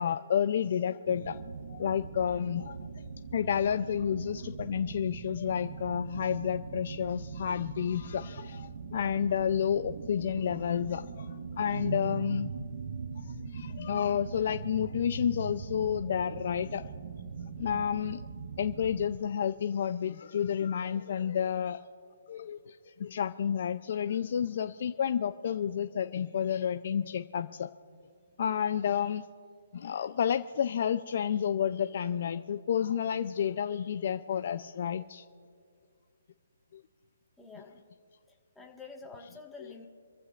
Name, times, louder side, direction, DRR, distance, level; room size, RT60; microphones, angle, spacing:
voice 1, 0.0-1.4 1.7-2.8 3.3-12.5 13.2-16.9 17.6-18.2 18.6-21.8 22.3-27.7 28.4-29.2 29.7-35.2 36.7-36.8, left 8 dB, 50° left, 9 dB, 0.5 m, -30 dB
sound 1, 1.1-19.2, right 5 dB, 55° right, 0.9 m, -41 dB
voice 2, 37.4-37.8 38.3-39.9, left 4 dB, 5° left, -1 dB, 1.6 m, -48 dB
26.5 x 15.0 x 2.5 m, 2.3 s
hypercardioid pair, 150°, 0 cm